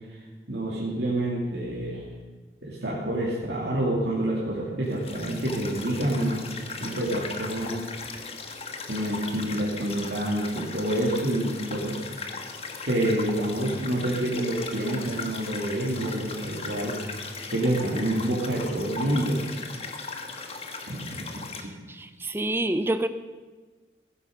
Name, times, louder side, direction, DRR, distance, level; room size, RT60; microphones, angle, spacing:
voice 1, 0.5-2.0 2.6-6.4 6.8-7.8 8.9-12.0 12.8-17.0 17.5-19.4 20.9-21.2, right 1 dB, 80° right, -6 dB, 2.9 m, -27 dB
sound 1, 4.9-21.6, left 4 dB, 35° left, 1.4 m, -38 dB
voice 2, 21.9-23.1, right 1 dB, 15° right, 11 dB, 0.5 m, -27 dB
17.0 x 9.9 x 6.7 m, 1.4 s
head